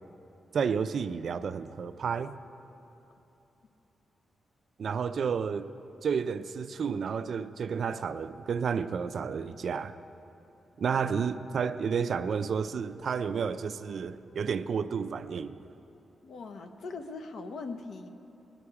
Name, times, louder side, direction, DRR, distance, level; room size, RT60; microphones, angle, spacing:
voice 1, 0.5-2.4 4.8-5.7 6.0-10.0 10.8-15.6, right 6 dB, 55° right, 11 dB, 0.4 m, -31 dB
voice 2, 10.9-11.2 16.2-18.1, left 3 dB, 70° left, 7 dB, 0.9 m, -41 dB
19.5 x 10.0 x 4.8 m, 2.9 s
wide cardioid pair, 140°, 0 cm